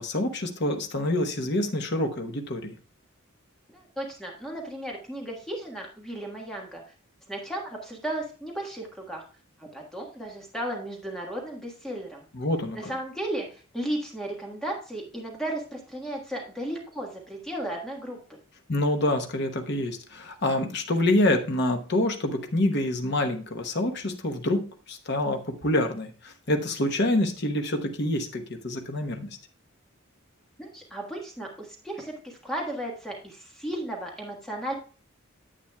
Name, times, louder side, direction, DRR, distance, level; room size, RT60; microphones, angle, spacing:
voice 1, 0.0-2.7 12.3-12.9 18.7-24.6 24.9-29.3, left 1 dB, 55° left, 4 dB, 1.1 m, -26 dB
voice 2, 3.7-6.8 7.3-9.2 9.6-12.2 12.7-18.4 30.6-34.7, right 1 dB, ahead, -1 dB, 1.4 m, -35 dB
10.0 x 8.0 x 2.3 m, 0.37 s
head